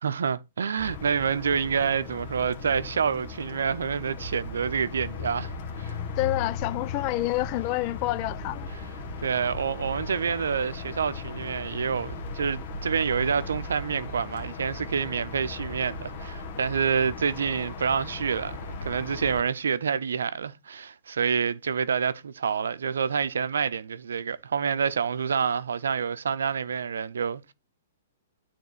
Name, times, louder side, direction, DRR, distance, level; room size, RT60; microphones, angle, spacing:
voice 1, 0.0-5.5 5.8-5.9 8.7-8.9 9.2-27.5, right 6 dB, 80° right, 0.6 m, -28 dB
sound 1, 0.8-19.4, left 3 dB, 55° left, 1.5 m, -37 dB
voice 2, 6.2-8.7, left 18 dB, 40° left, 0.4 m, -28 dB
9.5 x 3.6 x 6.7 m
hypercardioid pair, 125°, 0 cm